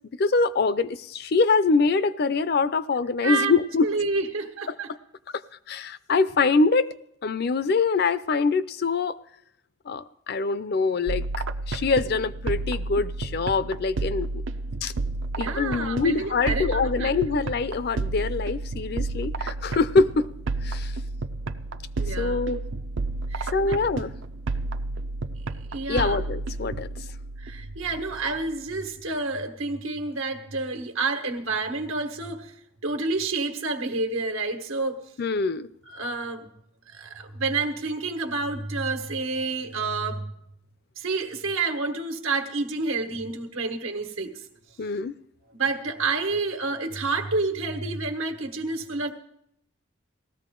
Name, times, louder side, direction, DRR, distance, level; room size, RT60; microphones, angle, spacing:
voice 1, 0.2-3.9 5.7-6.9 7.2-9.2 9.9-11.2 11.7-14.3 14.8-14.9 15.4-20.3 20.6-20.9 22.2-22.6 23.4-24.1 25.9-26.9 35.2-35.7 39.5-39.7 44.8-45.1, left 4 dB, 50° left, 15 dB, 0.4 m, -24 dB
voice 2, 3.8-4.9 15.4-17.4 22.0-22.5 23.3-23.8 25.7-26.2 27.4-32.5 32.8-35.0 35.9-36.5 36.9-40.3 41.0-44.3 45.5-49.1, right 3 dB, 90° right, 5 dB, 1.5 m, -29 dB
sound 1, 11.1-28.7, right 2 dB, 65° right, 0.5 m, -31 dB
18.0 x 14.0 x 3.8 m, 0.75 s
head